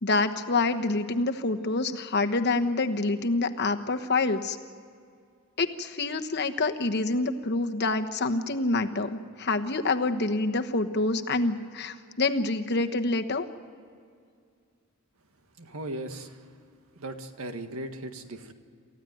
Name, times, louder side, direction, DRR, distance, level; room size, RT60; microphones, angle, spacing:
voice 1, 0.0-4.6 5.6-13.5, left 3 dB, 50° left, 6 dB, 1.2 m, -27 dB
voice 2, 15.6-16.5 17.0-18.5, right 1 dB, 75° right, 7 dB, 1.8 m, -38 dB
28.5 x 15.0 x 9.2 m, 2.3 s
head